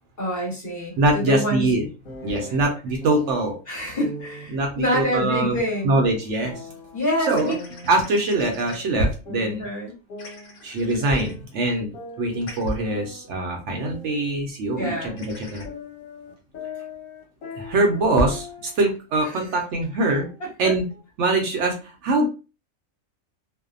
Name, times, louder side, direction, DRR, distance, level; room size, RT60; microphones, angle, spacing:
voice 1, 0.2-1.7 2.5-2.6 3.7-6.0 6.9-7.5 9.6-9.9 14.8-15.3 19.2-19.4 20.4-20.7, equal, 40° left, -4 dB, 1.1 m, -27 dB
voice 2, 1.0-1.8 2.2-3.5 4.5-5.6 5.8-6.7 7.2-7.6 7.8-9.7 10.6-15.6 17.5-20.3 20.6-20.9 21.2-22.3, right 2 dB, 65° right, 2 dB, 0.8 m, -23 dB
sound 1, 2.0-3.5 4.0-4.5 5.3-7.0 7.4-9.0 9.3-11.5 11.9-14.4 14.7-18.8 19.1-19.5 20.0-21.0, left 2 dB, 85° left, 1.1 m, -41 dB
sound 2, 6.3-6.4 7.3-8.8 10.2-11.3 12.4-12.7 15.2-15.6, left 3 dB, 65° left, 1.1 m, -44 dB
2.6 x 2.1 x 2.3 m, 0.32 s
omnidirectional pair, 1.4 m